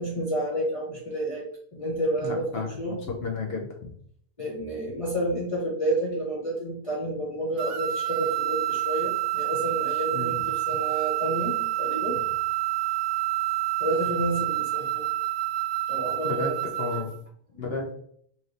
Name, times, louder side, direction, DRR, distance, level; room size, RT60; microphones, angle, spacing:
voice 1, 0.0-1.5 1.7-2.5 2.8-3.1 4.4-12.2 13.8-15.1 15.9-17.1 17.5-17.6, right 1 dB, 30° left, -5 dB, 0.8 m, -30 dB
voice 2, 2.2-3.0 3.2-3.9 10.1-10.3 16.2-16.5 16.8-17.1 17.6-17.9, left 4 dB, 60° left, 0 dB, 0.8 m, -32 dB
sound 1, 7.6-17.2, right 16 dB, 75° right, 0.9 m, -28 dB
4.1 x 3.2 x 2.5 m, 0.63 s
omnidirectional pair, 1.2 m